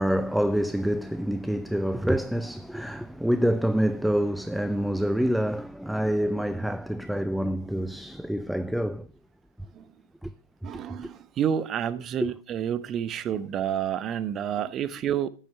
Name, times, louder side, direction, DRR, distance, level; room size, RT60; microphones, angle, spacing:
voice 1, 0.0-9.1 10.2-10.3 12.2-12.3, equal, ahead, 0.5 m, -26 dB
voice 2, 10.6-15.3, right 9 dB, 30° right, 0.9 m, -29 dB
14.5 x 9.2 x 5.6 m
figure-of-eight pair, 90°, 0 cm